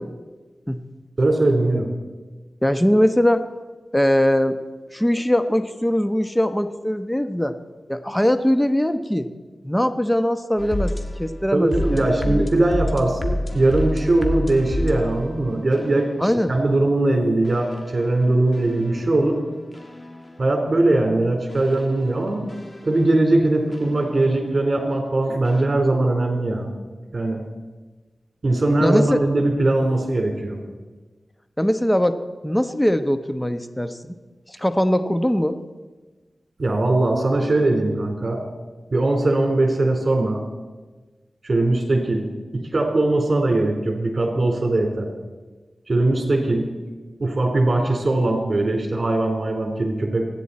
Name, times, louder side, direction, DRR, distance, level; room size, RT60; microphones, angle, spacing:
voice 1, 1.2-1.9 11.5-19.4 20.4-22.5 22.8-26.7 27.1-27.4 28.4-30.6 36.6-38.4 38.9-40.5 41.4-45.1 45.9-46.7 47.2-50.2, right 2 dB, 50° right, 2 dB, 3.8 m, -20 dB
voice 2, 2.6-3.4 3.9-4.6 4.9-7.5 7.9-9.3 9.6-10.9 11.2-12.5 16.2-16.5 28.8-29.2 31.6-32.2 32.4-34.2 34.5-35.6, equal, 10° left, 9 dB, 1.0 m, -21 dB
sound 1, 10.6-16.6 17.4-20.7 21.5-24.6 25.4-25.6, left 1 dB, 35° left, 2.0 m, -30 dB
28.0 x 10.0 x 4.3 m, 1.3 s
cardioid pair, 45°, 0 cm